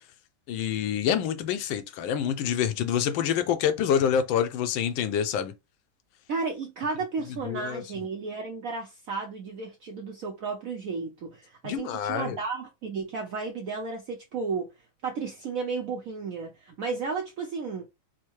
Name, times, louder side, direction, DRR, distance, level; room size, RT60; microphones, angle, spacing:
voice 1, 0.5-5.5 7.4-7.8 11.6-12.4, left 8 dB, 80° left, 1.3 m, -27 dB
voice 2, 6.3-14.7 15.0-17.9, right 4 dB, 70° right, 0.8 m, -33 dB
4.4 x 2.1 x 3.0 m
omnidirectional pair, 2.1 m